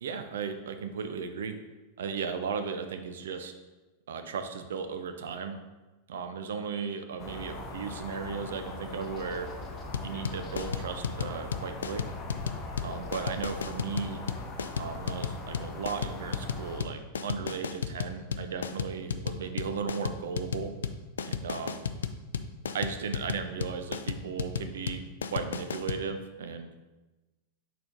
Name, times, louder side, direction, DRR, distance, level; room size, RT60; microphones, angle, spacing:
voice 1, 0.0-1.6 2.0-3.5 4.1-5.6 6.1-9.5 10.0-12.0 12.8-14.2 14.8-20.7 21.3-21.8 22.7-25.0 25.3-26.7, right 6 dB, 60° right, 7 dB, 0.6 m, -36 dB
sound 1, 7.2-16.8, left 2 dB, 30° left, 0.9 m, -41 dB
sound 2, 9.9-26.0, left 6 dB, 65° left, 0.3 m, -33 dB
4.3 x 4.2 x 5.2 m, 1.1 s
figure-of-eight pair, 90°, 0 cm